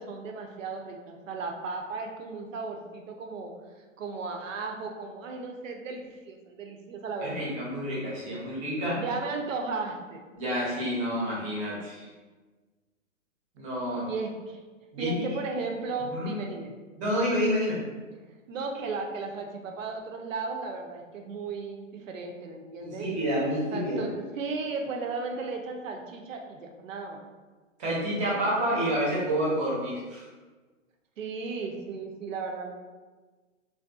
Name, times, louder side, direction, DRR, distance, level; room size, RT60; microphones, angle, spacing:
voice 1, 0.0-3.5 4.0-7.5 8.9-10.3 14.1-14.6 15.0-16.7 18.5-23.1 23.7-27.2 31.2-32.7, right 4 dB, 75° right, 3 dB, 0.6 m, -35 dB
voice 2, 7.2-9.0 10.4-12.1 13.6-14.1 14.9-15.4 16.1-16.3 17.0-17.8 22.8-24.0 27.8-30.3, equal, 20° right, -6 dB, 0.6 m, -29 dB
2.6 x 2.2 x 2.2 m, 1.3 s
hypercardioid pair, 135°, 40 cm